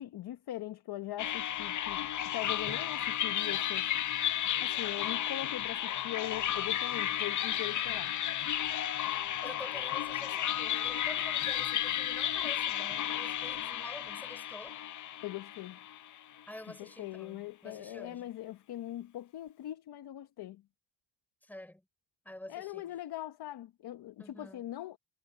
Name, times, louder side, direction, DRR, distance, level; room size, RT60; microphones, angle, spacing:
voice 1, 0.0-2.0 2.3-3.9 4.6-8.1 15.2-15.8 16.7-20.6 22.5-25.0, left 14 dB, 65° left, 1.0 m, -41 dB
sound 1, 1.2-16.4, left 11 dB, 50° left, 0.6 m, -33 dB
Drum, 2.7-5.4, right 2 dB, 15° right, 3.2 m, -56 dB
voice 2, 9.4-14.8 16.5-18.3 21.4-21.8 22.2-22.9 24.2-24.6, left 1 dB, 5° left, 3.8 m, -48 dB
cardioid pair, 110°, 40 cm